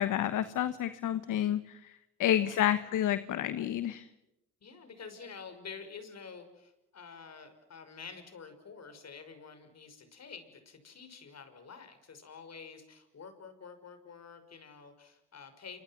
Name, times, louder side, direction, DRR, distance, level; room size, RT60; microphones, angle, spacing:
voice 1, 0.0-1.9 2.2-4.1, left 11 dB, 75° left, 12 dB, 1.3 m, -29 dB
voice 2, 2.3-2.9 4.6-15.8, left 5 dB, 55° left, 9 dB, 6.0 m, -49 dB
29.0 x 25.0 x 6.0 m, 0.87 s
supercardioid pair, 55°, 31 cm